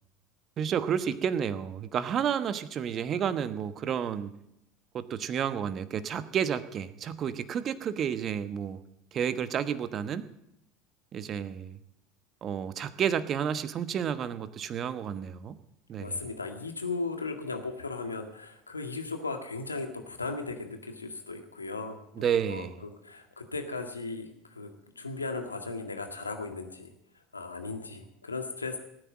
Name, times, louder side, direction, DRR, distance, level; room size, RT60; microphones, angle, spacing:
voice 1, 0.6-4.3 4.9-8.8 9.1-10.3 11.1-11.8 12.4-15.5 15.9-16.2 22.2-22.7, right 8 dB, 40° right, 12 dB, 1.1 m, -31 dB
voice 2, 16.0-24.7 25.0-26.9 27.3-28.8, left 3 dB, 90° left, 5 dB, 1.8 m, -37 dB
18.5 x 9.7 x 7.6 m, 0.80 s
figure-of-eight pair, 75°, 0 cm